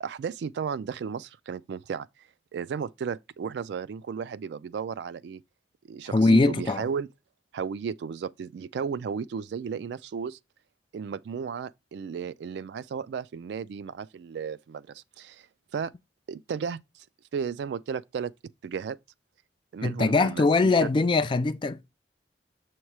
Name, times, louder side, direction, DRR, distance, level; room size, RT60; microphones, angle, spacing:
voice 1, 0.0-2.1 2.5-5.4 5.9-7.1 7.5-10.4 10.9-15.4 15.7-15.9 16.3-16.8 17.3-18.3 18.6-19.0 19.7-20.9, right 6 dB, 70° right, 0.3 m, -34 dB
voice 2, 6.1-6.9 19.8-21.9, left 3 dB, 30° left, 0.3 m, -22 dB
7.2 x 2.9 x 4.7 m
head